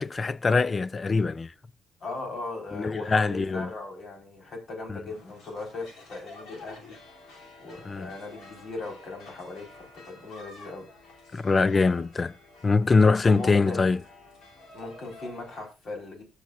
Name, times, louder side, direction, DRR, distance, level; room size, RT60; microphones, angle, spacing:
voice 1, 0.0-1.5 2.7-3.7 4.9-5.0 7.9-8.1 11.3-12.3 12.6-14.0, left 4 dB, 30° left, 0.4 m, -23 dB
voice 2, 2.0-6.9 7.6-10.9 13.2-13.8 14.7-16.2, left 3 dB, 60° left, 4.3 m, -38 dB
sound 1, 5.1-15.7, left 2 dB, 85° left, 3.0 m, -50 dB
19.0 x 6.5 x 2.5 m
cardioid pair, 90°, 0 cm